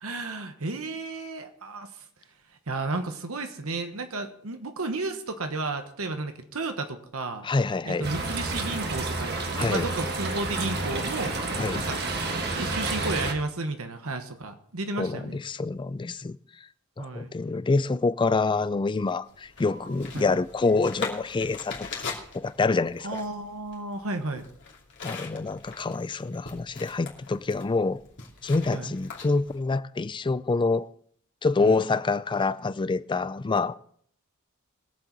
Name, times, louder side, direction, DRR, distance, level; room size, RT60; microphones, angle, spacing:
voice 1, 0.0-2.1 2.5-7.5 7.8-11.5 11.7-12.0 12.5-15.4 17.0-17.3 20.1-20.4 23.0-24.5 28.7-28.9 31.6-31.8, right 2 dB, 75° right, 1.3 m, -33 dB
voice 2, 7.4-8.1 9.6-9.8 11.6-11.8 15.0-16.4 17.0-22.0 22.3-23.2 25.0-28.0 28.4-30.9 31.4-33.8, left 3 dB, 20° left, 0.4 m, -26 dB
sound 1, 8.0-13.3, right 2 dB, 50° right, 1.6 m, -30 dB
sound 2, 19.2-29.6, left 5 dB, 55° left, 2.7 m, -41 dB
21.5 x 7.4 x 4.0 m
head